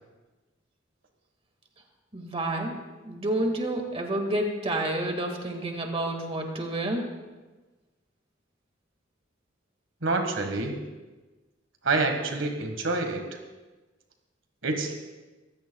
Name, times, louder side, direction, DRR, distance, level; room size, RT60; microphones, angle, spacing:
voice 1, 2.1-7.1, right 1 dB, 30° right, 3 dB, 1.9 m, -29 dB
voice 2, 10.0-10.7 11.8-13.2 14.6-14.9, right 3 dB, 80° right, 5 dB, 1.6 m, -27 dB
25.5 x 15.5 x 2.3 m, 1.2 s
head